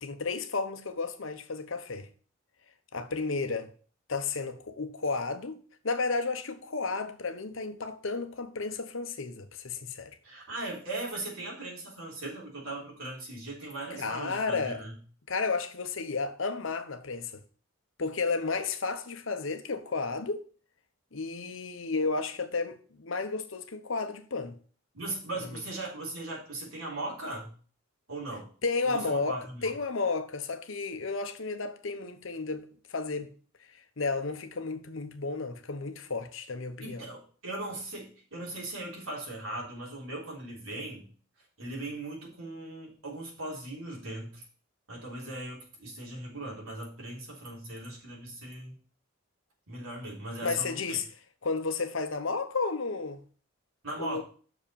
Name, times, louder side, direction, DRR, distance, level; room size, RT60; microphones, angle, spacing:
voice 1, 0.0-2.1 2.9-3.7 4.1-10.2 13.9-14.8 15.3-17.4 18.0-20.5 21.1-24.6 28.6-33.3 34.0-37.0 50.4-51.1 51.4-53.2 54.0-54.2, left 4 dB, 65° left, 0.9 m, -32 dB
voice 2, 10.2-15.0 24.9-27.5 28.1-28.5 28.8-29.7 36.8-41.1 41.6-44.4 44.9-48.7 49.7-51.0 53.8-54.2, right 2 dB, 85° right, 3.5 m, -39 dB
6.6 x 5.1 x 6.8 m
head